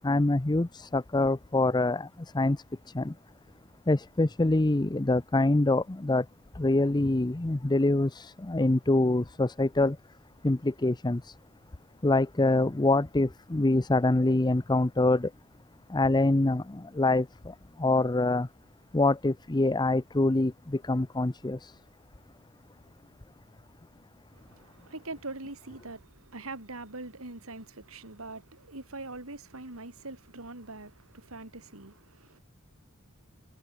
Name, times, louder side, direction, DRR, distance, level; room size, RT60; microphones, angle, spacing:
voice 1, 0.0-3.1 3.9-6.3 6.5-10.0 10.4-11.4 12.0-15.3 15.9-18.5 18.9-21.8, left 2 dB, 20° left, 0.6 m, -25 dB
voice 2, 24.4-32.4, right 2 dB, 90° right, 3.3 m, -43 dB
head